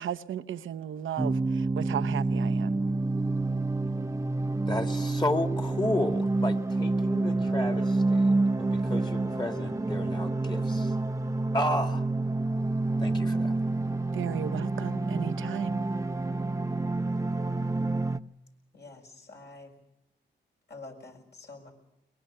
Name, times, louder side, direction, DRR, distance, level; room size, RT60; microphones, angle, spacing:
voice 1, 0.0-2.8 14.1-15.8, right 9 dB, 80° right, 0.8 m, -35 dB
sound 1, 1.2-18.2, right 2 dB, 15° right, 0.8 m, -28 dB
voice 2, 4.7-10.9 11.5-12.0 13.0-13.5, left 1 dB, 20° left, 2.2 m, -32 dB
voice 3, 18.7-19.7 20.7-21.7, left 3 dB, 60° left, 6.6 m, -47 dB
23.0 x 21.0 x 6.7 m
cardioid pair, 60°, 20 cm